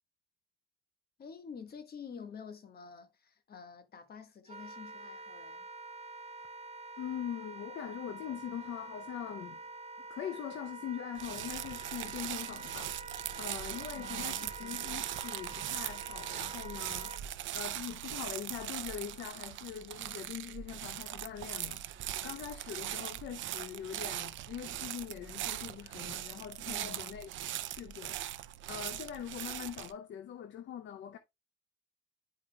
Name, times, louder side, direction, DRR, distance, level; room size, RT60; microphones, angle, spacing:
voice 1, 1.2-5.7 13.9-14.5 26.6-27.1, left 6 dB, 50° left, 1.5 m, -48 dB
Wind instrument woodwind instrument, 4.5-17.2, right 3 dB, 30° right, 0.7 m, -47 dB
voice 2, 7.0-9.6 10.1-13.0 13.4-17.1 17.5-27.3 27.6-28.2 28.7-31.2, left 9 dB, 70° left, 0.6 m, -42 dB
sound 1, 11.2-29.9, right 13 dB, 75° right, 0.5 m, -40 dB
10.0 x 5.1 x 2.2 m
cardioid pair, 90°, 20 cm